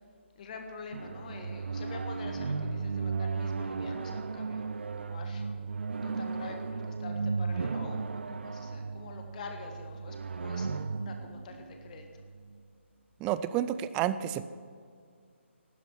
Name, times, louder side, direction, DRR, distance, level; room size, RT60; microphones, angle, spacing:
voice 1, 0.4-5.7 5.9-12.1, left 4 dB, 35° left, 4 dB, 1.7 m, -46 dB
sound 1, 0.9-12.6, right 4 dB, 60° right, 0.6 m, -35 dB
voice 2, 13.2-14.4, right 11 dB, 15° right, 14 dB, 0.4 m, -30 dB
15.5 x 12.0 x 6.0 m, 2.2 s
figure-of-eight pair, 145°, 7 cm